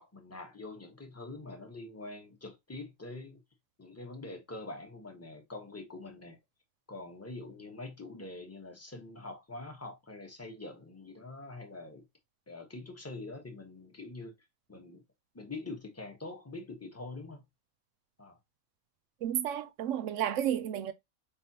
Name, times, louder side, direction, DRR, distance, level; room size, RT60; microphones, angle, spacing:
voice 1, 0.0-3.4 3.8-6.4 6.9-12.1 12.5-14.3 14.7-15.0 15.3-17.4 18.2-18.4, left 2 dB, 10° left, 0.9 m, -44 dB
voice 2, 19.2-20.9, right 10 dB, 70° right, 0.8 m, -32 dB
5.1 x 3.4 x 2.7 m
omnidirectional pair, 1.5 m